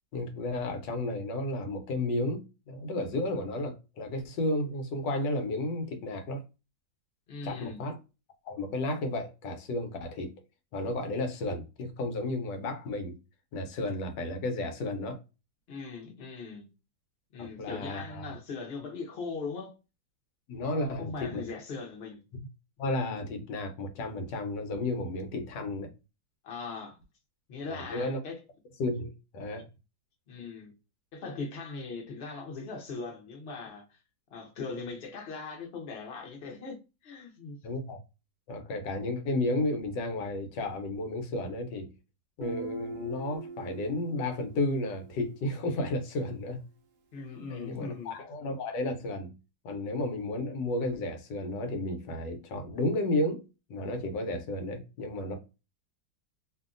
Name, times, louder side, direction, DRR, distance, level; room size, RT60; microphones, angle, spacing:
voice 1, 0.1-6.4 7.4-8.0 8.4-10.4 10.7-13.2 13.5-15.2 17.4-18.3 20.5-21.4 22.3-22.5 22.8-25.9 27.7-28.2 28.8-29.7 37.6-38.0 38.5-41.9 42.4-46.6 47.5-49.3 49.6-53.4 53.7-55.4, left 2 dB, 90° left, 1.4 m, -33 dB
voice 2, 7.3-7.8 15.7-16.7 17.3-19.7 20.7-22.2 26.4-27.0 27.5-28.4 30.3-30.7 31.1-34.0 34.3-37.6 47.1-48.1, left 4 dB, 45° left, 0.9 m, -40 dB
Guitar, 42.4-46.0, right 3 dB, 85° right, 0.6 m, -43 dB
2.8 x 2.6 x 2.5 m
omnidirectional pair, 1.9 m